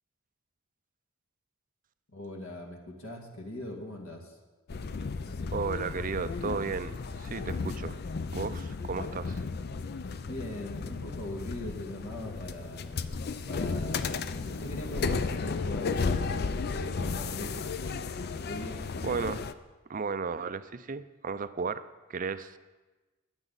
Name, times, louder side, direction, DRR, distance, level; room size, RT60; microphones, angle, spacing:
voice 1, 2.1-4.4 10.2-13.2 13.5-17.5 18.1-18.8, left 1 dB, 70° left, 1 dB, 2.1 m, -41 dB
sound 1, 4.7-19.5, left 4 dB, 50° left, 0.5 m, -34 dB
voice 2, 5.5-8.0 8.3-9.4 19.0-19.4 19.9-22.6, right 5 dB, 40° right, 13 dB, 0.5 m, -34 dB
21.5 x 9.0 x 4.0 m, 1.2 s
head